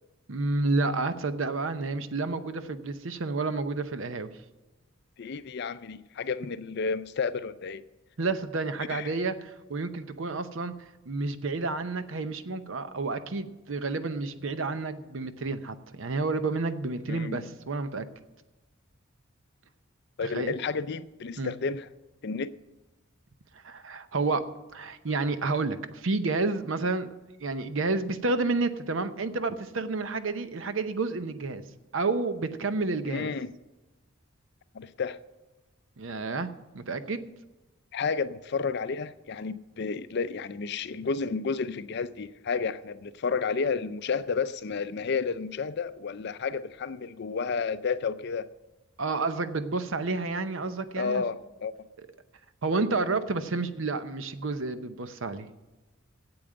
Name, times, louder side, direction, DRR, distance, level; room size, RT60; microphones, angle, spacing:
voice 1, 0.3-4.3 8.2-10.7 11.1-18.0 20.2-20.6 21.4-21.5 23.6-24.4 24.7-27.1 27.4-31.6 31.9-33.3 36.0-36.5 36.7-37.2 49.0-51.2 52.6-55.5, right 3 dB, 70° right, 0.8 m, -30 dB
voice 2, 5.2-7.8 8.9-9.1 17.1-17.4 20.2-21.9 22.2-22.5 33.1-33.5 34.7-35.2 37.9-48.5 51.0-51.7, left 5 dB, 55° left, 0.5 m, -31 dB
8.7 x 7.9 x 8.9 m
head